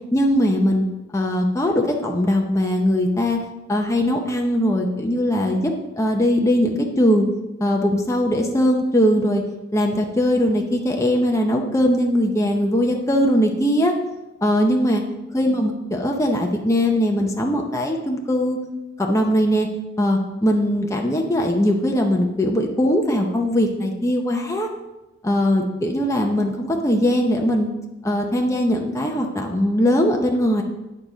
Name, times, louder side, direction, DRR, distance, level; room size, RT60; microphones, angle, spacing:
voice 1, 0.1-0.8 1.1-3.4 3.7-7.3 7.6-9.4 9.7-13.9 14.4-15.0 15.3-18.6 19.0-19.7 20.0-24.7 25.2-27.7 28.0-30.6, equal, 15° left, 1 dB, 0.7 m, -20 dB
8.7 x 6.9 x 3.9 m, 1.0 s
head